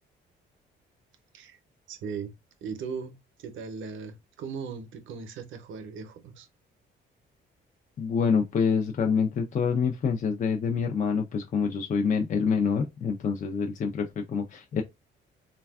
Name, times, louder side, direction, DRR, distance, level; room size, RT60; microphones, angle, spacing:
voice 1, 1.9-2.3 2.6-6.5, right 5 dB, 75° right, 0.6 m, -38 dB
voice 2, 8.0-14.8, left 5 dB, 40° left, 0.5 m, -26 dB
3.3 x 2.2 x 2.3 m
cardioid pair, 90°, 20 cm